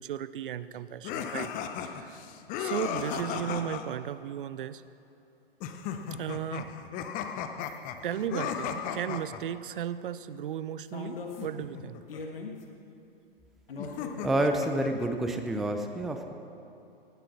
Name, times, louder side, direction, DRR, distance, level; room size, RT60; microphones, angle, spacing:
voice 1, 0.0-1.5 1.8-2.2 2.6-4.8 6.1-6.7 8.0-12.0, right 9 dB, 60° right, 16 dB, 0.6 m, -35 dB
sound 1, 1.0-3.9 5.6-9.4 11.4-12.2 13.8-15.1, left 8 dB, 25° left, 0.8 m, -36 dB
sound 2, 7.6-7.9 9.0-9.1 10.9-11.5 12.1-12.6 13.7-14.9, left 4 dB, 70° left, 1.7 m, -40 dB
voice 2, 14.2-16.3, right 1 dB, ahead, 5 dB, 0.3 m, -28 dB
18.5 x 7.7 x 6.1 m, 2.9 s
figure-of-eight pair, 110°, 30 cm